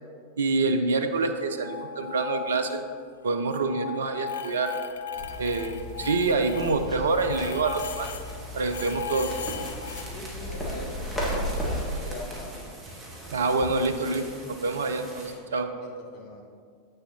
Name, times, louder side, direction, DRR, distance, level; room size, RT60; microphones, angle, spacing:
voice 1, 0.4-2.8 3.2-4.7 5.4-8.1 8.5-9.3 13.3-15.7, right 3 dB, 65° right, 7 dB, 0.4 m, -26 dB
sound 1, 1.4-3.0 3.3-8.3 8.7-10.0, left 7 dB, 65° left, 0.3 m, -37 dB
sound 2, 5.1-11.9, equal, 10° left, 1.5 m, -35 dB
sound 3, 7.6-15.3, right 1 dB, 25° right, 1.4 m, -43 dB
voice 2, 10.1-11.5 11.7-12.6 15.8-16.4, left 1 dB, 45° left, 0 dB, 1.2 m, -41 dB
8.1 x 6.3 x 2.8 m, 2.1 s
figure-of-eight pair, 90°, 0 cm